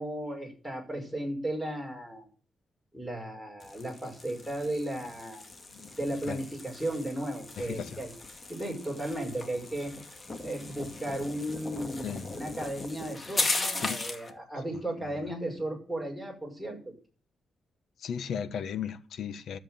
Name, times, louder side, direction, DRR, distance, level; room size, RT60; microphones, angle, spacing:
voice 1, 0.0-2.3 2.9-5.5 6.0-8.1 8.5-9.9 10.4-16.9, right 1 dB, ahead, 6.0 m, -35 dB
sound 1, 3.6-14.3, left 3 dB, 30° left, 1.9 m, -38 dB
voice 2, 7.6-8.0 12.0-12.3 13.8-14.0 18.0-19.6, left 8 dB, 75° left, 1.2 m, -35 dB
13.5 x 7.6 x 9.1 m
cardioid pair, 125°, 0 cm